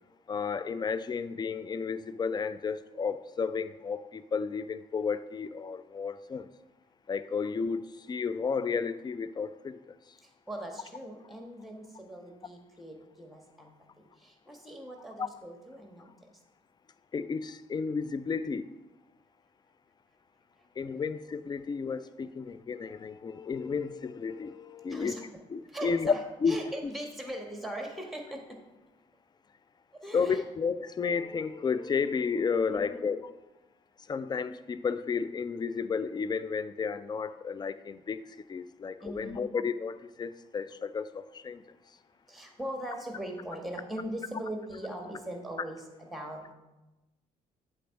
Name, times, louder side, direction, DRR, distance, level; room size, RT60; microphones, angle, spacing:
voice 1, 0.3-6.5 7.1-9.8 15.2-15.3 17.1-18.7 20.8-26.1 26.4-26.9 30.1-33.3 34.1-41.6, left 5 dB, 20° left, 14 dB, 0.4 m, -32 dB
voice 2, 10.5-16.1 24.9-25.2 25.7-26.2 26.5-28.4 30.0-30.4 32.7-33.1 39.0-39.5 42.3-45.8 46.1-46.5, right 1 dB, ahead, 2 dB, 1.5 m, -40 dB
8.1 x 3.4 x 5.8 m, 1.0 s
figure-of-eight pair, 45°, 21 cm